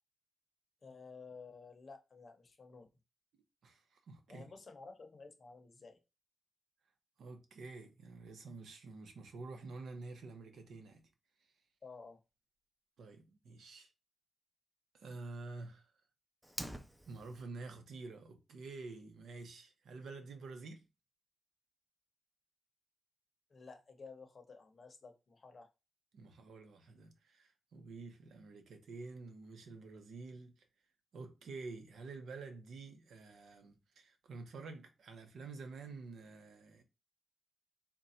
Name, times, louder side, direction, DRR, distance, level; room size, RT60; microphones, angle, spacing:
voice 1, 0.8-2.9 4.3-6.0 11.8-12.2 23.5-25.7, left 4 dB, 40° left, 0.7 m, -53 dB
voice 2, 3.6-4.5 7.2-11.0 13.0-13.9 14.9-15.9 17.1-20.8 26.1-30.6 31.1-36.8, right 3 dB, 85° right, 0.8 m, -49 dB
Fire, 16.4-17.4, equal, 5° right, 0.4 m, -45 dB
3.9 x 2.2 x 4.1 m
wide cardioid pair, 145°, 0 cm